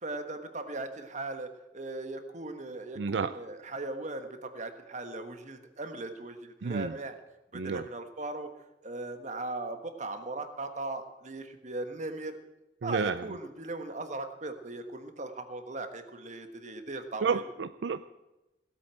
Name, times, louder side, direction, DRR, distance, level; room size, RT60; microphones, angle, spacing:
voice 1, 0.0-7.1 7.5-8.5 8.8-12.4 12.8-17.4, right 2 dB, 40° right, 7 dB, 1.4 m, -38 dB
voice 2, 3.0-3.3 6.6-6.9 7.5-7.8 12.8-13.2 17.2-18.0, right 5 dB, 75° right, 12 dB, 0.5 m, -30 dB
16.5 x 8.3 x 7.6 m, 1.0 s
head